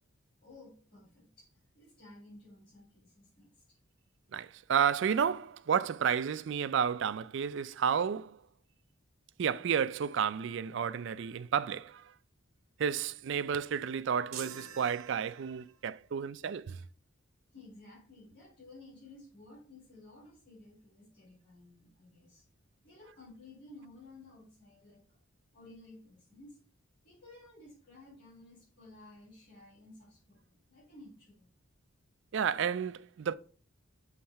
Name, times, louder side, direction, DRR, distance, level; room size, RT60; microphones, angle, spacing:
voice 1, 0.4-3.6 17.5-22.4 22.8-25.2 25.5-26.6 27.0-31.5, left 2 dB, 50° left, 3.9 m, -55 dB
voice 2, 4.3-8.4 9.4-12.1 12.8-16.8 32.3-33.3, right 7 dB, 60° right, 0.4 m, -31 dB
sound 1, 14.3-15.8, right 9 dB, 85° right, 0.8 m, -46 dB
7.2 x 3.2 x 5.6 m
head